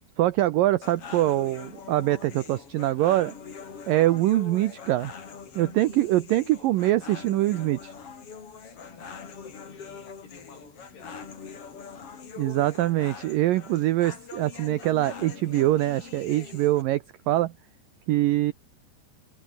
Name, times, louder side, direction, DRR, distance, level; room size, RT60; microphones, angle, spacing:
voice 1, 0.2-3.3 3.9-5.1 5.6-7.9 12.4-17.5 18.1-18.5, right 15 dB, 80° right, 2.0 m, -24 dB
sound 1, 0.8-16.8, left 6 dB, 35° left, 3.3 m, -43 dB
voice 2, 8.8-11.6, left 5 dB, 70° left, 8.3 m, -52 dB
open air
omnidirectional pair, 4.9 m